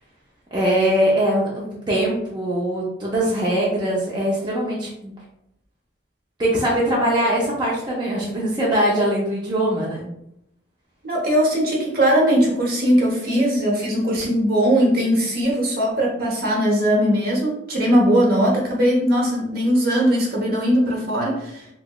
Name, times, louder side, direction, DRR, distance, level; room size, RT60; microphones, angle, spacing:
voice 1, 0.5-5.1 6.4-10.1, right 1 dB, 25° right, -5 dB, 0.6 m, -22 dB
voice 2, 11.0-21.7, equal, 55° right, -2 dB, 0.9 m, -19 dB
3.1 x 2.9 x 2.3 m, 0.79 s
head